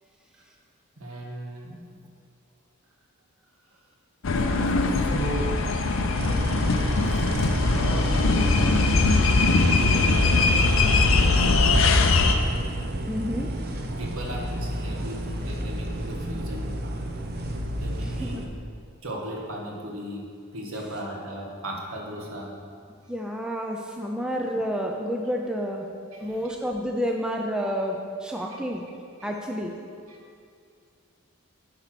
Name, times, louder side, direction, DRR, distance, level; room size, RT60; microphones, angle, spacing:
voice 1, 1.0-2.0 4.3-5.9 6.4-6.5 7.6-9.1 9.4-12.0 14.0-16.7 17.7-18.5 19.0-20.2 20.5-22.6 26.1-26.5 28.3-28.6 29.2-29.4 30.1-30.3, right 1 dB, 75° right, -1 dB, 1.4 m, -37 dB
sound 1, 4.2-12.4, left 3 dB, 65° left, 0.5 m, -21 dB
sound 2, 6.2-18.5, right 1 dB, 45° right, 0.6 m, -30 dB
voice 2, 13.1-13.5 18.0-18.4 23.1-25.9 26.2-28.8 29.2-29.8, equal, 5° right, 1 dB, 0.4 m, -30 dB
9.0 x 4.5 x 5.9 m, 2.3 s
head